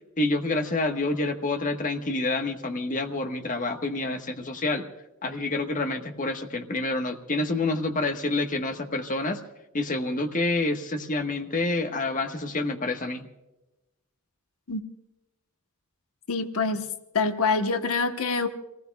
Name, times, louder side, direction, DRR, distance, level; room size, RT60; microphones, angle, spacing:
voice 1, 0.2-4.8 5.2-9.4 9.7-13.3, left 2 dB, 40° left, 5 dB, 1.3 m, -28 dB
voice 2, 16.3-16.9 17.1-18.5, left 4 dB, 80° left, 7 dB, 1.1 m, -25 dB
28.5 x 19.0 x 2.3 m, 0.99 s
head